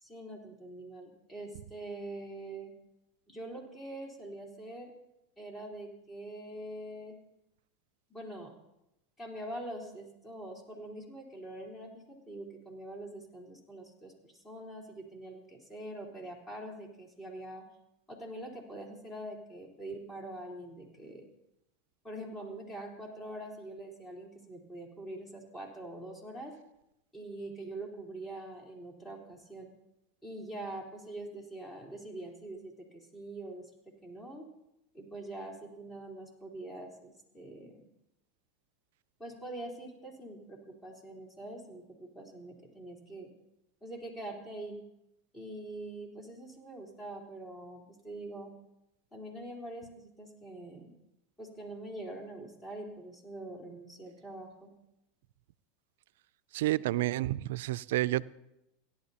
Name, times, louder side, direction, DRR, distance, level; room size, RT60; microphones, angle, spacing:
voice 1, 0.0-2.7 3.3-4.9 5.4-7.1 8.1-8.5 9.2-17.6 18.1-21.3 22.0-26.5 27.1-29.7 30.2-33.7 34.0-34.5 34.9-37.9 39.2-43.3 43.8-44.8 45.3-48.5 49.1-50.9 51.4-54.7, right 1 dB, 20° left, -1 dB, 3.8 m, -44 dB
voice 2, 56.5-58.2, right 16 dB, 75° right, 19 dB, 0.3 m, -30 dB
17.5 x 11.0 x 2.9 m, 0.86 s
hypercardioid pair, 105°, 0 cm